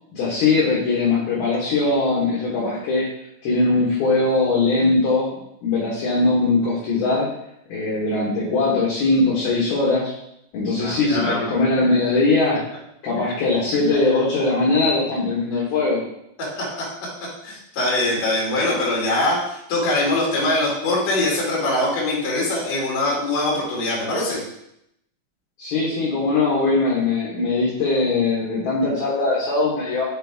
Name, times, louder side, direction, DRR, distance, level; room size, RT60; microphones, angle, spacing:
voice 1, 0.1-3.1 3.4-7.3 7.7-10.1 10.5-12.6 13.0-16.0 25.6-30.0, left 3 dB, 70° left, -6 dB, 2.4 m, -20 dB
voice 2, 10.8-11.5 13.2-13.3 16.4-16.6 17.4-24.4, left 2 dB, 45° left, -5 dB, 2.3 m, -23 dB
8.2 x 4.0 x 3.5 m, 0.78 s
omnidirectional pair, 6.0 m